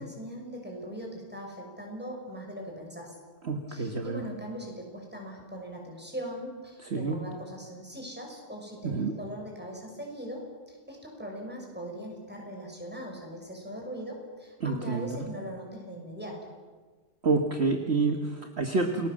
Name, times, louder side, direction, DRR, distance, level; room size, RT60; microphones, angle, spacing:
voice 1, 0.0-3.1 3.7-16.5, equal, 5° right, 0 dB, 6.3 m, -40 dB
voice 2, 3.4-4.2 6.9-7.2 8.8-9.1 14.6-15.1 17.2-19.1, right 3 dB, 45° right, 5 dB, 1.7 m, -28 dB
29.0 x 20.5 x 7.7 m, 1.4 s
omnidirectional pair, 1.6 m